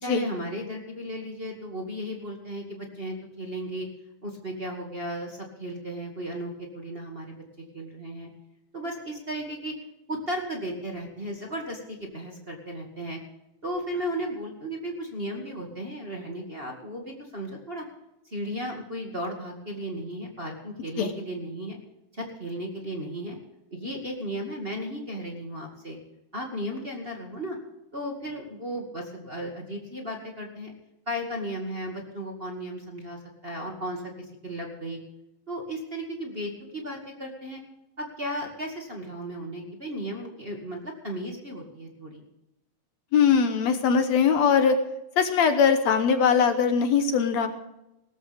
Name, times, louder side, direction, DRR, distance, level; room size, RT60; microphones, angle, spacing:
voice 1, 0.0-3.9 4.2-7.4 7.7-8.3 8.7-9.7 10.1-13.2 13.6-17.8 18.3-21.8 22.1-23.4 23.7-26.0 26.3-27.6 27.9-30.7 31.1-35.0 35.5-37.6 38.0-42.2, equal, 20° right, 0 dB, 1.9 m, -35 dB
voice 2, 43.1-44.8 45.2-47.5, left 6 dB, 65° left, 8 dB, 2.1 m, -21 dB
18.5 x 13.5 x 3.5 m, 0.88 s
omnidirectional pair, 3.5 m